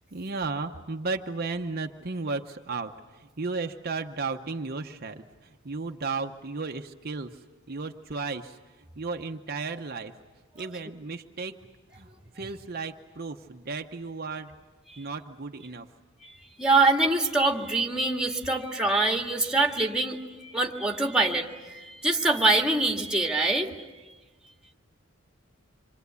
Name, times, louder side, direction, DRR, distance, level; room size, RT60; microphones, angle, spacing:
voice 1, 0.1-7.4 7.7-8.6 9.0-10.1 10.5-11.6 11.9-12.1 12.3-14.5 15.0-15.9, right 4 dB, 50° right, 4 dB, 0.9 m, -34 dB
voice 2, 16.2-23.7, right 2 dB, 5° right, 1 dB, 1.9 m, -25 dB
27.0 x 24.5 x 8.3 m, 1.3 s
head